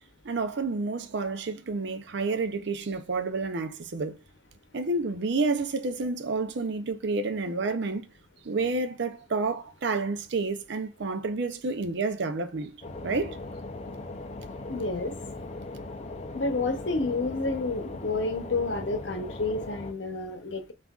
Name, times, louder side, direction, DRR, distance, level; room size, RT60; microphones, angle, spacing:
voice 1, 0.2-4.2 4.7-8.0 8.4-12.8 13.0-13.4, right 3 dB, 60° right, 0.5 m, -29 dB
sound 1, 12.8-19.9, left 2 dB, 35° left, 0.4 m, -39 dB
voice 2, 14.7-15.1 16.3-20.7, left 3 dB, 65° left, 0.8 m, -30 dB
7.1 x 2.5 x 2.4 m
head